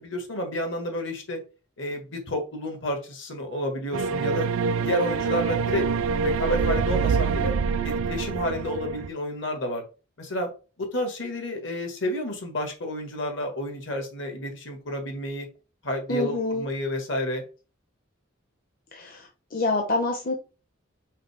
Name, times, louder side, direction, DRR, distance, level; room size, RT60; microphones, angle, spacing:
voice 1, 0.0-1.4 1.8-4.5 4.8-5.9 6.2-7.5 7.8-9.8 10.2-10.5 10.8-15.5 15.8-17.4, left 1 dB, 65° left, 4 dB, 1.9 m, -30 dB
sound 1, 3.9-9.1, right 5 dB, 80° right, 0.4 m, -25 dB
voice 2, 16.1-16.7 18.9-20.4, left 2 dB, 45° left, 1 dB, 0.9 m, -27 dB
5.6 x 4.7 x 3.5 m, 0.34 s
head